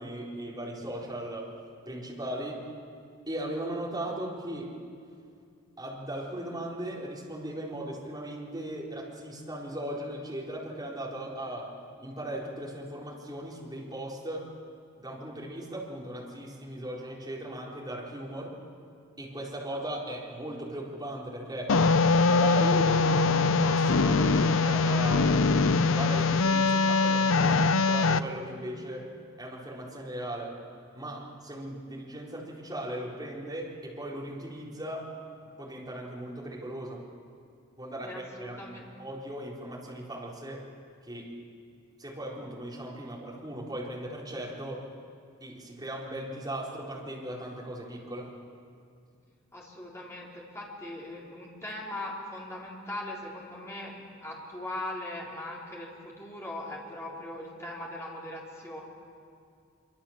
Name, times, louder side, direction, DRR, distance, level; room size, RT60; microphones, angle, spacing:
voice 1, 0.0-1.6 1.9-2.6 3.3-4.8 5.8-11.7 12.0-14.5 15.0-18.6 19.2-21.8 22.2-25.4 25.9-29.1 29.4-30.6 30.9-35.2 35.6-37.1 37.8-40.7 41.0-41.4 42.0-44.9 45.4-48.3, right 1 dB, 20° right, -4 dB, 4.2 m, -38 dB
sound 1, 21.7-28.2, left 4 dB, 70° left, 0.7 m, -23 dB
voice 2, 38.0-38.8 49.5-58.8, left 1 dB, 15° left, -4 dB, 4.1 m, -40 dB
25.0 x 24.5 x 7.4 m, 2.3 s
head